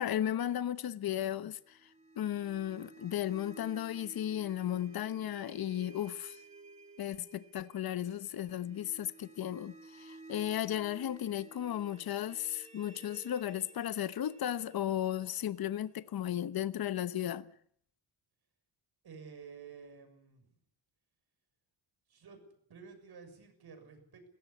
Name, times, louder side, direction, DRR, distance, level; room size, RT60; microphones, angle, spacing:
voice 1, 0.0-1.8 2.2-6.4 7.0-17.5, left 11 dB, 50° left, 1.0 m, -35 dB
sound 1, 1.7-16.6, right 3 dB, 15° right, 3.0 m, -55 dB
voice 2, 19.0-20.5 22.1-22.4 22.7-24.3, right 5 dB, 55° right, 6.9 m, -52 dB
22.5 x 17.0 x 8.5 m
cardioid pair, 115°, 45 cm